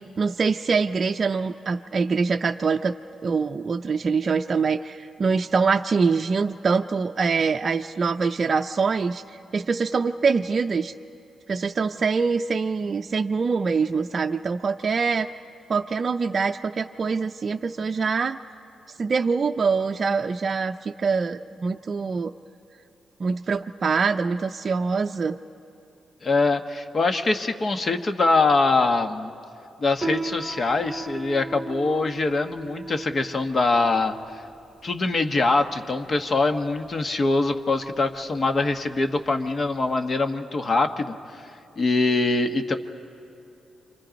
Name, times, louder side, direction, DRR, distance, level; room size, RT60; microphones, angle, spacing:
voice 1, 0.2-2.9 3.2-10.9 11.5-15.3 15.7-18.4 19.0-22.3 23.2-25.4, right 5 dB, 45° right, 4 dB, 0.5 m, -24 dB
voice 2, 26.2-29.3 29.8-34.2 34.8-41.1 41.8-42.8, left 3 dB, 45° left, 7 dB, 1.2 m, -23 dB
Piano, 30.0-39.9, right 3 dB, 20° right, 1.0 m, -37 dB
27.5 x 25.0 x 5.2 m, 2.7 s
cardioid pair, 80°, 0 cm